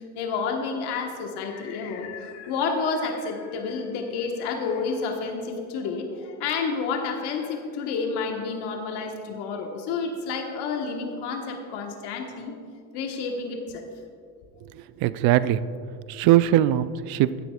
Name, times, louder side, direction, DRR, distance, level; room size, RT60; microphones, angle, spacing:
voice 1, 0.0-12.5 12.9-13.8, left 4 dB, 70° left, 3 dB, 1.4 m, -30 dB
voice 2, 14.7-15.6 16.1-17.3, right 13 dB, 60° right, 15 dB, 0.5 m, -21 dB
15.0 x 9.9 x 2.4 m, 2.3 s
supercardioid pair, 85°, 42 cm